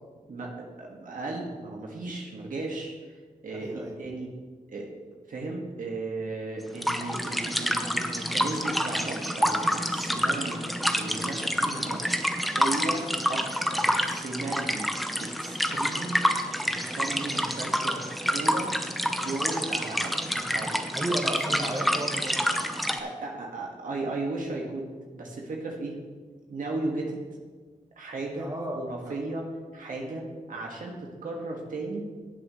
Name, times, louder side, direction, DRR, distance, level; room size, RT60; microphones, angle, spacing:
voice 1, 0.3-3.2 3.4-4.3 4.7-4.9 5.3-10.6 11.0-14.9 15.2-16.2 16.6-18.7 19.1-20.8 22.9-26.0 26.5-27.2 28.0-29.5 29.7-32.0, right 2 dB, 75° right, -1 dB, 1.8 m, -35 dB
voice 2, 3.5-4.0 20.9-22.5 28.4-29.2, right 1 dB, 25° right, 0 dB, 2.0 m, -33 dB
sound 1, 6.7-23.0, equal, ahead, 0.9 m, -28 dB
16.5 x 7.7 x 3.2 m, 1.4 s
cardioid pair, 65°, 14 cm